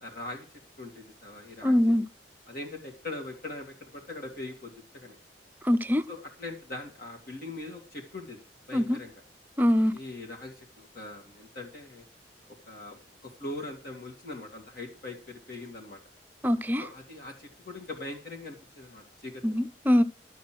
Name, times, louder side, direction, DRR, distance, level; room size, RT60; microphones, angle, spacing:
voice 1, 0.0-0.5 0.8-1.8 2.5-5.2 6.1-9.1 9.9-12.0 12.7-16.0 16.8-19.4, left 2 dB, 55° left, 2.7 m, -41 dB
voice 2, 1.6-2.1 5.6-6.0 8.7-9.0 9.6-9.9 16.4-16.8 19.4-20.0, left 1 dB, 10° right, 0.7 m, -23 dB
12.5 x 6.5 x 7.7 m
head